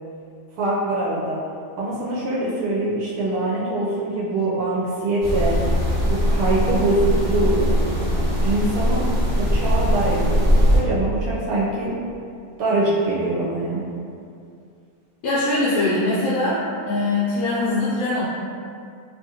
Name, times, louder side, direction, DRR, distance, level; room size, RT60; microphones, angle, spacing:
voice 1, 0.6-1.4 1.8-5.5 6.0-7.7 8.4-9.1 9.4-11.9 12.6-13.8, right 2 dB, 80° right, -7 dB, 1.1 m, -23 dB
sound 1, 5.2-10.8, equal, 15° right, 0.6 m, -20 dB
voice 2, 15.2-18.2, left 2 dB, 70° left, -10 dB, 1.0 m, -22 dB
2.8 x 2.5 x 2.7 m, 2.4 s
omnidirectional pair, 1.7 m